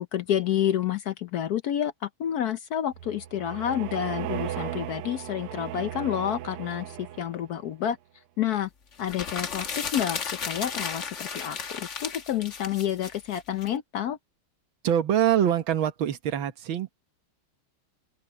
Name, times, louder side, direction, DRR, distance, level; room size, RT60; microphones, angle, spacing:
voice 1, 0.0-8.0 8.4-8.7 9.0-14.2, left 10 dB, 70° left, 0.9 m, -29 dB
sound 1, 2.9-7.6, right 12 dB, 85° right, 1.6 m, -36 dB
sound 2, 9.0-13.7, left 5 dB, 40° left, 1.4 m, -34 dB
voice 2, 14.8-16.9, right 10 dB, 65° right, 1.9 m, -24 dB
open air
omnidirectional pair, 2.4 m